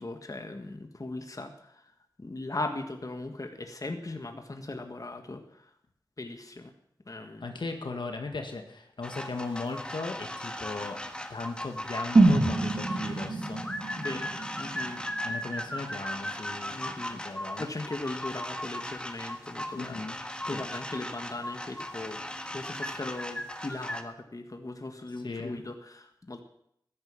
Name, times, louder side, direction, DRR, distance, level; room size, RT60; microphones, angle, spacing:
voice 1, 0.0-1.8 2.2-5.7 6.2-6.7 7.1-7.6 14.0-14.3 14.6-15.0 16.7-17.2 17.6-20.0 20.5-22.2 22.5-26.4, left 2 dB, 45° left, 6 dB, 1.6 m, -38 dB
voice 2, 7.4-11.0 11.3-13.6 15.2-17.7 19.8-20.2 20.5-20.6 25.2-25.6, left 3 dB, 80° left, 4 dB, 1.9 m, -37 dB
sound 1, 9.0-24.0, left 1 dB, 10° left, 1.5 m, -37 dB
sound 2, 12.2-16.1 16.4-16.5, right 2 dB, 80° right, 2.3 m, -26 dB
13.5 x 10.5 x 7.3 m, 0.73 s
wide cardioid pair, 45°, 8 cm